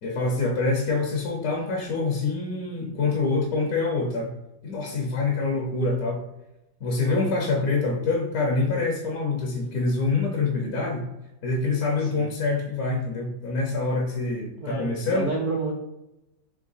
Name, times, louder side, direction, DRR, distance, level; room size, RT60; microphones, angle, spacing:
voice 1, 0.0-4.3 4.6-6.2 6.8-11.1 11.4-15.3, left 3 dB, 60° left, 0 dB, 1.0 m, -25 dB
voice 2, 7.0-7.4 12.0-12.2 14.6-15.7, right 3 dB, 75° right, -3 dB, 0.4 m, -30 dB
3.7 x 3.2 x 3.9 m, 0.91 s
omnidirectional pair, 2.0 m